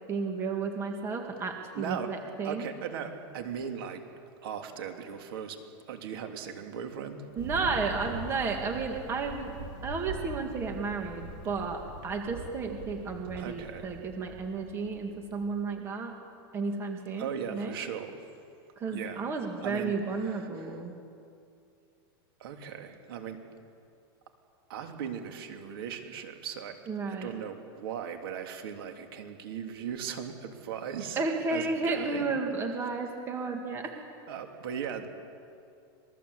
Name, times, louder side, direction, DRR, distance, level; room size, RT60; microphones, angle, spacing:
voice 1, 0.1-2.7 7.4-9.5 9.8-16.2 16.5-17.8 18.8-20.9 26.9-27.4 31.2-33.9, right 4 dB, 20° right, 3 dB, 2.0 m, -32 dB
voice 2, 1.7-2.1 2.4-4.0 4.4-7.3 13.4-13.8 17.2-18.3 18.9-19.2 19.6-20.8 22.4-23.4 24.7-26.8 27.1-31.2 31.5-32.3 34.3-35.1, right 8 dB, 65° right, 4 dB, 3.1 m, -38 dB
Thunder, 7.4-15.6, right 2 dB, 35° right, 3.1 m, -43 dB
27.0 x 21.5 x 8.4 m, 2.5 s
supercardioid pair, 165°, 13 cm